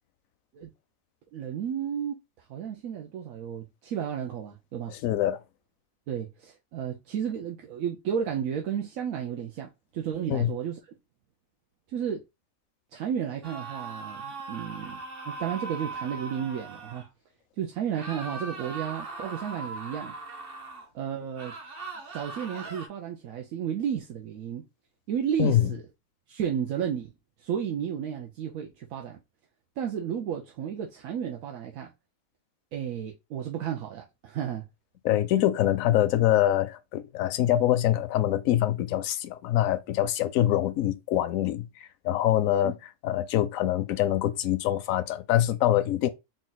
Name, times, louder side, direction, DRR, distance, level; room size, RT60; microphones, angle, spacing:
voice 1, 1.3-5.0 6.1-10.9 11.9-12.2 12.9-15.0 15.3-17.1 17.6-20.1 20.9-21.5 22.1-24.6 25.1-25.8 26.3-27.1 27.4-29.2 29.8-31.9 32.7-34.6 42.6-42.7, right 8 dB, 80° right, 1.1 m, -33 dB
voice 2, 4.9-5.4 10.3-10.5 25.4-25.7 35.0-42.7 43.0-46.1, left 12 dB, 75° left, 1.0 m, -24 dB
sound 1, 13.4-17.1 17.9-20.9 21.3-22.9, right 3 dB, 45° right, 1.1 m, -39 dB
3.9 x 2.4 x 3.9 m
omnidirectional pair, 1.4 m